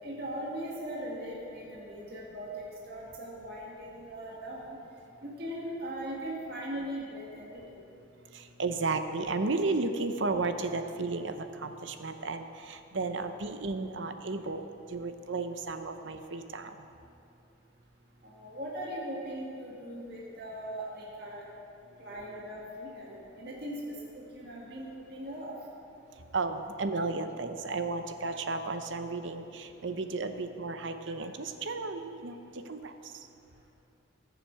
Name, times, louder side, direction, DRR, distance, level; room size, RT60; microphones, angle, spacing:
voice 1, 0.0-4.8 5.2-7.8 18.2-21.4 22.0-25.5, right 1 dB, 50° right, -4 dB, 2.1 m, -39 dB
voice 2, 8.3-14.6 14.9-16.8 26.3-33.3, right 3 dB, 75° right, 8 dB, 0.8 m, -33 dB
20.5 x 7.3 x 4.7 m, 2.7 s
head